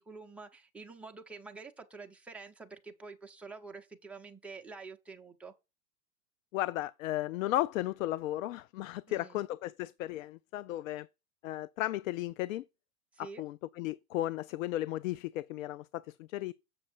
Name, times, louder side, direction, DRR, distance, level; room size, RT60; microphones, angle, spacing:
voice 1, 0.0-5.5 9.1-9.5 13.1-13.4, right 4 dB, 5° right, 0.7 m, -48 dB
voice 2, 6.5-11.1 11.4-12.6 13.2-16.5, left 15 dB, 70° left, 0.5 m, -35 dB
7.7 x 6.4 x 4.3 m
supercardioid pair, 140°, 41 cm